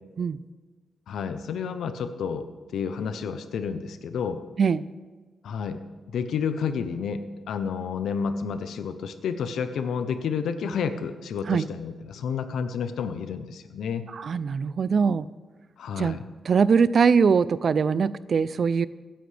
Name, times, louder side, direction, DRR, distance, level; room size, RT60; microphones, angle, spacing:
voice 1, 1.1-4.4 5.4-5.8 6.1-14.0 15.8-16.3, left 6 dB, 90° left, 10 dB, 0.7 m, -30 dB
voice 2, 14.1-15.2 16.0-16.2 16.5-18.9, right 5 dB, 55° right, 18 dB, 0.3 m, -22 dB
16.0 x 10.0 x 3.4 m, 1.3 s
cardioid pair, 95°, 0 cm